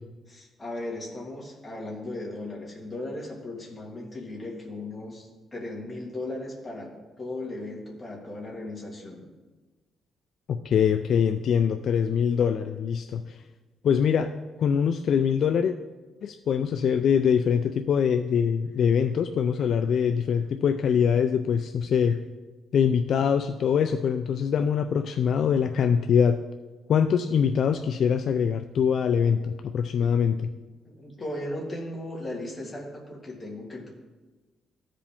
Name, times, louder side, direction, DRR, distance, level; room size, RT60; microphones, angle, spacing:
voice 1, 0.3-6.9 7.2-9.3 30.0-30.3 30.9-33.9, left 1 dB, 15° left, -2 dB, 1.8 m, -37 dB
voice 2, 10.5-13.4 13.8-14.3 14.6-15.7 16.2-22.2 22.7-26.4 26.9-30.5, left 7 dB, 55° left, 8 dB, 0.3 m, -23 dB
14.5 x 5.0 x 3.6 m, 1.2 s
cardioid pair, 160°, 0 cm